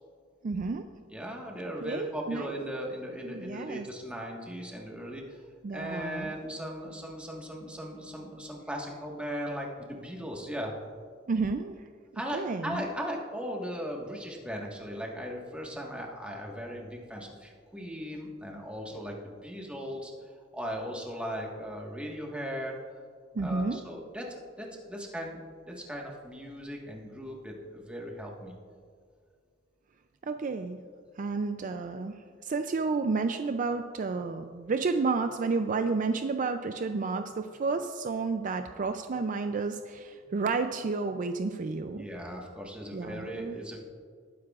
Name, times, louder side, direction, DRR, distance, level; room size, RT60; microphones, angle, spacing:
voice 1, 0.4-0.8 1.8-2.5 3.2-3.9 5.6-6.3 11.3-11.9 12.3-12.8 23.3-23.8 30.2-30.8 31.2-42.0 42.9-43.6, right 4 dB, 45° right, 8 dB, 0.4 m, -31 dB
voice 2, 1.1-5.4 5.7-10.7 12.1-20.1 20.5-22.7 23.4-28.5 41.9-43.8, equal, 5° right, -1 dB, 1.5 m, -38 dB
19.0 x 9.5 x 2.4 m, 2.1 s
head